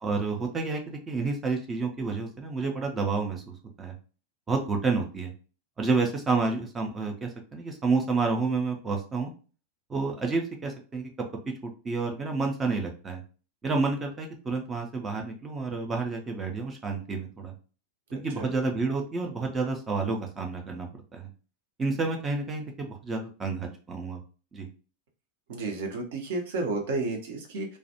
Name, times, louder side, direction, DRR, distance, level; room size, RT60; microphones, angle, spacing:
voice 1, 0.0-3.9 4.5-5.3 5.8-9.3 9.9-11.1 11.6-13.2 13.6-17.5 18.1-21.3 21.8-24.2 24.5-24.7, right 4 dB, 20° right, 2 dB, 0.5 m, -29 dB
voice 2, 18.1-18.5 25.5-27.8, right 3 dB, 55° right, 3 dB, 0.7 m, -32 dB
2.3 x 2.1 x 2.7 m, 0.37 s
figure-of-eight pair, 90°, 0 cm